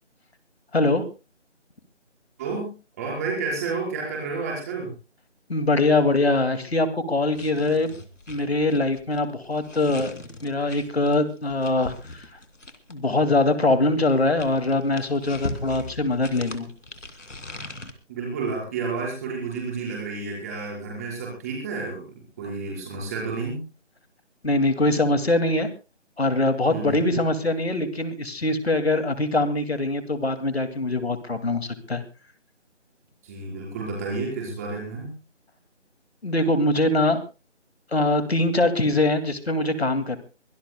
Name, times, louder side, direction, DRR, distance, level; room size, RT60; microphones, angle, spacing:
voice 1, 0.7-1.0 5.5-7.9 8.3-12.3 12.9-16.7 24.4-25.7 26.2-32.0 36.2-37.2 37.9-40.2, left 2 dB, 55° left, 10 dB, 2.3 m, -23 dB
voice 2, 2.4-2.7 3.0-4.9 18.1-23.6 26.7-27.0 33.2-35.1, right 4 dB, 15° right, -2 dB, 4.7 m, -30 dB
sound 1, 7.3-13.1 13.9-17.9, left 2 dB, 80° left, 2.8 m, -39 dB
24.0 x 18.0 x 2.2 m, 0.31 s
figure-of-eight pair, 165°, 36 cm